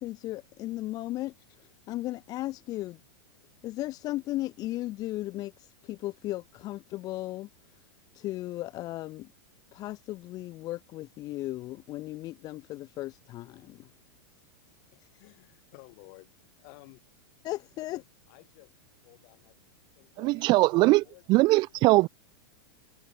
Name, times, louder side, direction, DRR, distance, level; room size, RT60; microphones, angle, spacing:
voice 1, 0.0-3.0 3.6-7.5 8.1-9.3 9.7-13.9 17.4-18.0, left 16 dB, 30° left, 0.5 m, -36 dB
voice 2, 14.7-17.0 17.8-18.7 19.0-21.7, left 36 dB, 50° left, 7.4 m, -55 dB
voice 3, 20.2-21.0 21.3-22.1, right 21 dB, 35° right, 0.5 m, -21 dB
supercardioid pair, 140°, 13 cm